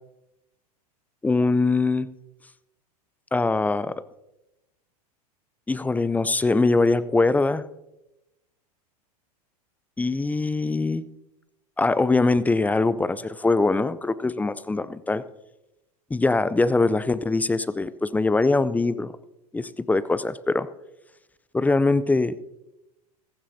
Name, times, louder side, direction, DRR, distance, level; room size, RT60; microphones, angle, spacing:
voice 1, 1.2-2.1 3.3-3.9 5.7-7.7 10.0-11.0 11.8-15.2 16.1-19.1 19.5-20.7 21.5-22.3, left 3 dB, 10° left, 16 dB, 0.4 m, -22 dB
15.5 x 15.5 x 2.7 m, 0.94 s
hypercardioid pair, 95°, 20 cm